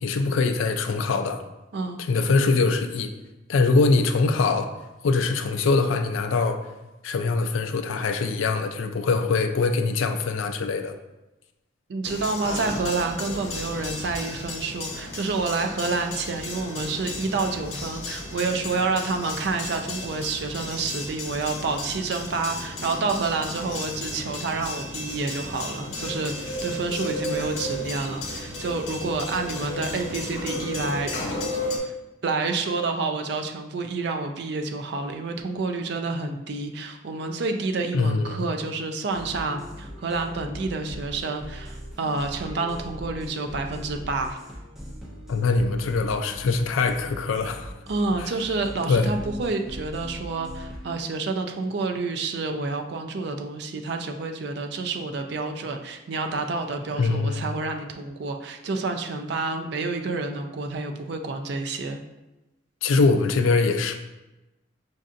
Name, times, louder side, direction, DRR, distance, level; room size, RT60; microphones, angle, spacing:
voice 1, 0.0-1.4 2.0-3.1 3.5-4.7 5.0-6.6 7.0-10.9 37.9-38.5 45.3-47.7 48.2-48.3 48.9-49.1 56.9-57.4 62.8-63.9, left 3 dB, 80° left, 7 dB, 0.4 m, -23 dB
voice 2, 11.9-31.4 31.8-31.9 32.2-44.4 47.9-62.0, right 3 dB, 55° right, 5 dB, 0.4 m, -29 dB
sound 1, 12.0-31.8, left 1 dB, 65° left, 0.8 m, -34 dB
sound 2, 39.1-51.0, equal, ahead, 0.5 m, -40 dB
5.3 x 2.6 x 2.5 m, 1.0 s
head